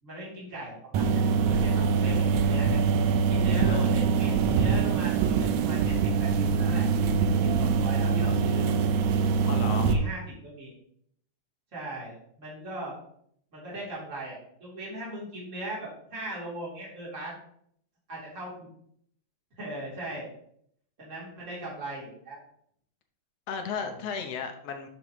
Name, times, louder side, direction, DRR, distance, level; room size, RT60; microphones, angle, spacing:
voice 1, 0.0-1.2 1.5-2.8 3.3-6.9 7.1-8.8 9.5-10.7 11.7-12.9 13.5-17.4 18.1-18.7 19.6-20.3 21.0-22.4 23.8-24.1, right 1 dB, 25° right, -6 dB, 3.6 m, -39 dB
sound 1, 0.9-9.9, right 5 dB, 80° right, 2.1 m, -24 dB
voice 2, 9.4-10.0 23.5-24.9, left 6 dB, 65° left, 6 dB, 1.8 m, -34 dB
11.0 x 6.5 x 3.2 m, 0.67 s
omnidirectional pair, 3.4 m